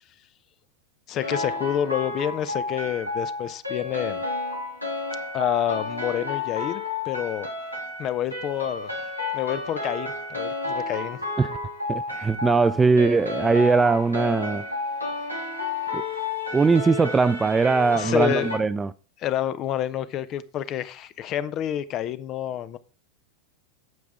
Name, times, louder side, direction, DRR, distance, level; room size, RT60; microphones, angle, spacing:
voice 1, 1.1-4.2 5.3-7.5 8.0-11.2 18.0-18.5 19.2-22.8, left 11 dB, 35° left, 0.6 m, -28 dB
sound 1, 1.2-18.6, left 3 dB, 90° left, 2.1 m, -31 dB
voice 2, 11.9-14.7 15.9-16.0 16.5-18.9, right 4 dB, 15° right, 0.3 m, -20 dB
9.2 x 7.2 x 3.6 m
figure-of-eight pair, 90°, 0 cm